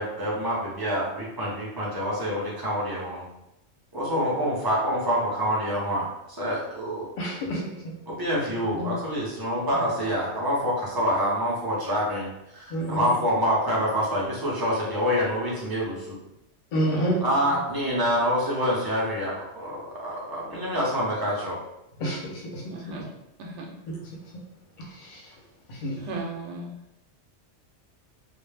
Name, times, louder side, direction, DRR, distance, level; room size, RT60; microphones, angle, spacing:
voice 1, 0.0-3.3 3.9-7.1 8.1-16.2 17.2-21.6, equal, 30° right, -5 dB, 0.4 m, -26 dB
voice 2, 7.2-7.9 12.7-13.1 16.7-17.2 22.0-22.6 23.9-24.0 24.9-25.2 25.7-26.0, equal, 50° left, -2 dB, 0.7 m, -29 dB
voice 3, 8.5-8.9 9.7-9.9 16.9-17.6 22.7-23.1 23.4-23.7 26.0-26.7, equal, 75° right, 0 dB, 0.9 m, -36 dB
2.2 x 2.0 x 3.2 m, 0.86 s
omnidirectional pair, 1.3 m